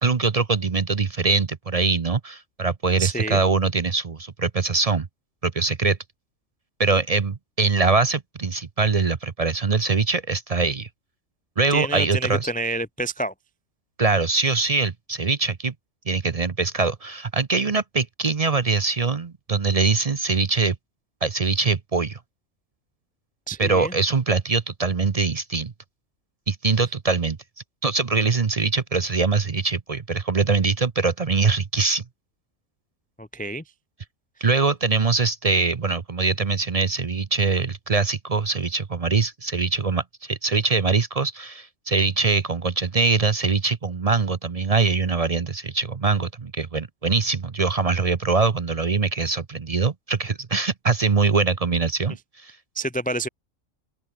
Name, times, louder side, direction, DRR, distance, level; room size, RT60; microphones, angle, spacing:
voice 1, 0.0-5.1 5.4-6.0 6.8-10.9 11.6-12.5 14.0-15.7 16.1-20.8 21.2-22.2 23.6-25.7 26.5-27.4 27.8-32.0 34.4-52.5, right 4 dB, 35° right, 0.7 m, -23 dB
voice 2, 3.0-3.4 11.7-13.3 23.5-23.9 33.2-33.6 52.7-53.3, right 2 dB, 5° left, 0.8 m, -28 dB
omnidirectional pair, 1.4 m